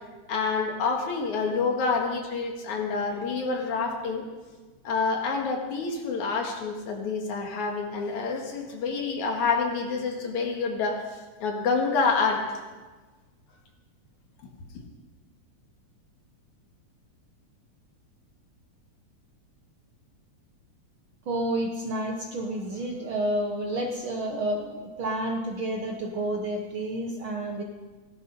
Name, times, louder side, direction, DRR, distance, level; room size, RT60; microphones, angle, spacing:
voice 1, 0.3-4.2 4.8-11.0 11.4-12.6, left 4 dB, 70° left, 1 dB, 3.3 m, -27 dB
voice 2, 21.2-27.6, right 1 dB, 60° right, 2 dB, 1.4 m, -30 dB
17.0 x 12.0 x 5.5 m, 1.3 s
omnidirectional pair, 3.5 m